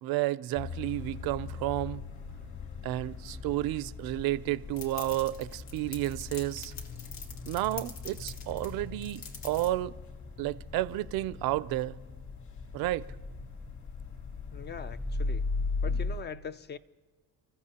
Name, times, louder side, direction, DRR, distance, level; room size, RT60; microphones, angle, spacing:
voice 1, 0.0-2.0 2.8-6.7 7.4-9.9 10.4-12.0 12.7-13.1, right 16 dB, 70° right, 0.5 m, -31 dB
sound 1, 0.6-16.2, left 3 dB, 50° left, 3.0 m, -38 dB
sound 2, 4.8-9.7, left 5 dB, 85° left, 2.0 m, -46 dB
voice 2, 14.5-15.5 15.8-16.8, left 6 dB, 30° left, 0.4 m, -41 dB
30.0 x 14.5 x 2.8 m
cardioid pair, 120°, 36 cm